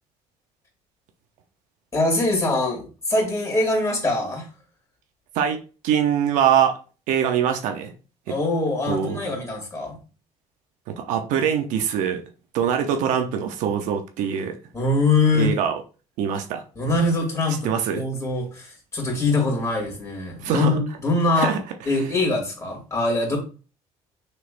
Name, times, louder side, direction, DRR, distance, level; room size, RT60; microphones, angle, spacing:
voice 1, 1.9-4.5 8.3-10.0 14.7-15.5 16.8-21.5 21.9-23.4, left 2 dB, 25° left, 2.4 m, -23 dB
voice 2, 5.3-6.8 7.1-7.9 8.3-8.4 8.9-9.2 10.9-12.2 12.5-14.6 15.4-15.8 16.2-16.6 17.6-18.0 20.4-20.8 21.3-21.6, right 8 dB, 80° right, 0.7 m, -23 dB
6.6 x 3.2 x 2.5 m
cardioid pair, 95°, 13 cm